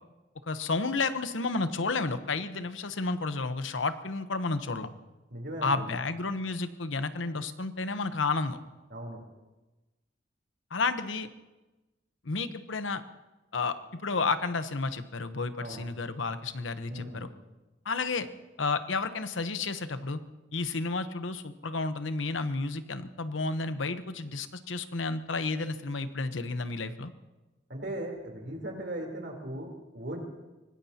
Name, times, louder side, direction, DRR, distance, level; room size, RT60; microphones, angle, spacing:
voice 1, 0.5-4.9 5.6-8.6 10.7-11.3 12.2-13.0 13.5-17.3 17.8-18.3 18.6-20.2 20.5-27.1, left 3 dB, 90° left, 10 dB, 0.9 m, -31 dB
voice 2, 5.3-6.0 8.9-9.2 15.6-15.9 16.9-17.3 27.7-30.2, right 1 dB, 60° right, 2 dB, 3.6 m, -38 dB
24.5 x 19.0 x 2.9 m, 1.1 s
head